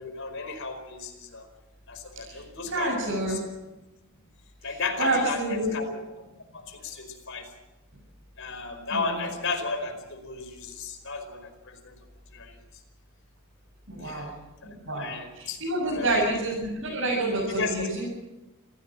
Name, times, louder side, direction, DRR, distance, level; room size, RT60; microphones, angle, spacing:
voice 1, 0.0-1.5 1.9-3.4 4.6-5.9 6.5-7.4 8.4-11.9 12.3-12.5 14.0-14.3 14.6-15.6 15.9-16.1 17.4-17.9, left 4 dB, 65° left, 6 dB, 4.9 m, -34 dB
voice 2, 2.2-3.4 4.6-5.7 8.9-9.3 13.9-14.3 14.8-18.1, right 2 dB, 65° right, -4 dB, 7.9 m, -28 dB
28.0 x 16.5 x 7.6 m, 1.1 s
head